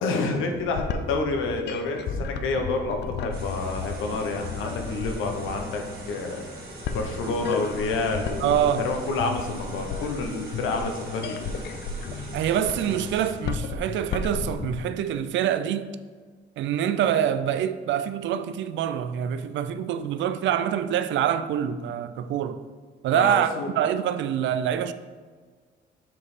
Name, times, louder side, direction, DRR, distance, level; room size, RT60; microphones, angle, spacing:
voice 1, 0.0-6.4 6.9-8.6 8.8-11.5 23.1-23.7, left 3 dB, 90° left, 0.8 m, -28 dB
sound 1, 0.5-14.9, left 5 dB, 60° left, 0.5 m, -34 dB
sound 2, 3.3-13.3, right 2 dB, 50° right, 1.7 m, -42 dB
voice 2, 8.4-8.8 12.3-15.9 16.6-22.6 23.0-24.9, right 10 dB, 70° right, 0.4 m, -25 dB
7.3 x 3.3 x 4.1 m
cardioid pair, 90°, 20 cm